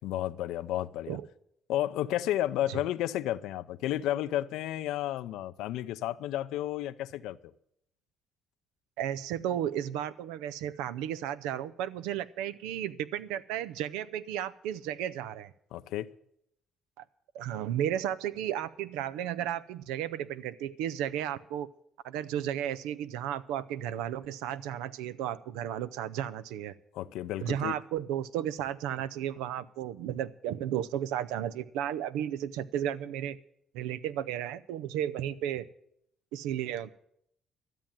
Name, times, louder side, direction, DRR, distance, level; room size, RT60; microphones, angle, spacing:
voice 1, 0.0-1.2 1.7-7.4 15.7-16.1 26.9-27.8, left 13 dB, 80° left, 0.4 m, -32 dB
voice 2, 9.0-15.5 17.0-17.1 17.3-21.7 22.0-26.7 27.4-33.4 33.7-35.7 36.3-36.9, right 10 dB, 85° right, 0.5 m, -34 dB
13.0 x 7.6 x 8.7 m
supercardioid pair, 65°, 0 cm